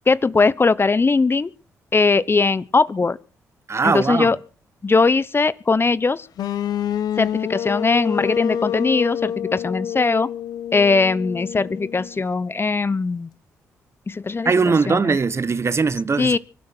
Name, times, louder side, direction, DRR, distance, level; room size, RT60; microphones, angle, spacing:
voice 1, 0.1-1.5 1.9-3.2 3.8-4.4 4.8-6.3 7.2-10.3 10.7-13.3 14.1-15.2 16.2-16.4, left 4 dB, 35° left, 1.0 m, -20 dB
voice 2, 3.7-4.3 14.4-16.4, right 4 dB, 40° right, 1.2 m, -20 dB
sound 1, 6.4-12.2, left 9 dB, 70° left, 1.3 m, -27 dB
25.0 x 11.5 x 4.6 m
hypercardioid pair, 45°, 7 cm